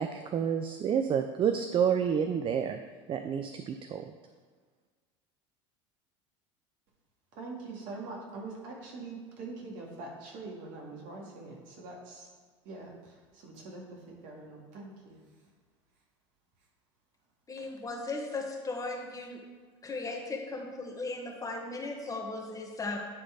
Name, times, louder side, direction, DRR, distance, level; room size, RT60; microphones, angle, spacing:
voice 1, 0.0-2.8 3.1-4.1, right 8 dB, 35° right, 8 dB, 0.5 m, -29 dB
voice 2, 7.3-12.3 12.6-15.2 17.6-17.7, right 3 dB, 60° right, -2 dB, 2.2 m, -44 dB
voice 3, 17.5-19.4 19.8-23.0, left 3 dB, 20° left, 1 dB, 1.5 m, -37 dB
9.8 x 4.0 x 4.8 m, 1.5 s
hypercardioid pair, 85°, 15 cm